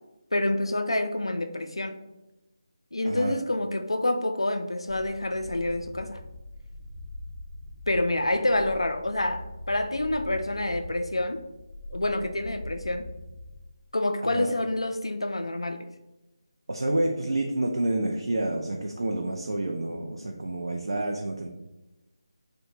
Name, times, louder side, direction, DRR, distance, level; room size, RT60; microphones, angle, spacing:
voice 1, 0.3-2.0 2.9-6.2 7.9-11.4 11.9-13.0 13.9-15.9, left 1 dB, 85° left, 7 dB, 0.3 m, -27 dB
voice 2, 3.0-3.4 14.3-14.6 16.7-21.5, right 1 dB, 75° right, 1 dB, 0.3 m, -28 dB
sound 1, 4.9-13.6, left 1 dB, 40° left, 0.7 m, -42 dB
2.8 x 2.1 x 2.9 m, 0.99 s
figure-of-eight pair, 160°, 3 cm